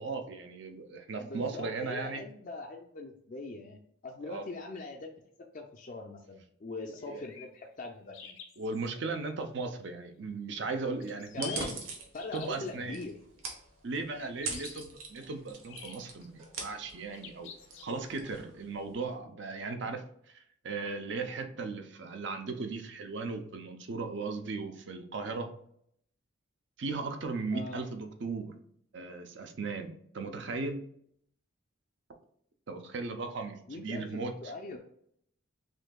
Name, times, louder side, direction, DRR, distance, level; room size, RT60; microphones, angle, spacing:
voice 1, 0.0-2.2 4.3-4.4 7.1-7.2 8.6-11.7 12.3-13.0 13.8-17.5 17.8-20.4 20.6-25.5 26.8-28.5 28.9-30.8 32.7-34.3, right 3 dB, 60° right, 6 dB, 0.5 m, -37 dB
voice 2, 1.2-5.2 5.5-8.4 11.3-11.8 12.1-13.1 27.5-27.8 33.7-34.8, left 3 dB, 40° left, 1 dB, 0.4 m, -42 dB
sound 1, 7.0-7.5 8.1-8.9 11.0-11.7 12.2-12.7 14.2-14.8 15.7-16.3 17.1-18.0, left 7 dB, 75° left, 0.7 m, -47 dB
sound 2, 11.3-19.1, right 4 dB, 90° right, 1.0 m, -44 dB
6.2 x 2.7 x 2.3 m, 0.69 s
head